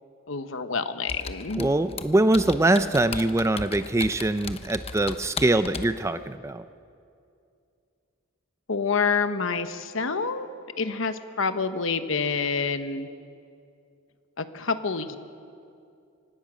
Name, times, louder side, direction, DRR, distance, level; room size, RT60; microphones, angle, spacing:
voice 1, 0.3-1.7 8.7-10.5 10.8-13.1 14.4-15.2, left 5 dB, 70° left, 10 dB, 1.0 m, -27 dB
Computer keyboard, 1.1-6.0, left 4 dB, 30° left, 0.8 m, -36 dB
voice 2, 1.6-6.6, right 2 dB, 15° right, 12 dB, 0.4 m, -23 dB
25.0 x 18.5 x 6.2 m, 2.5 s
head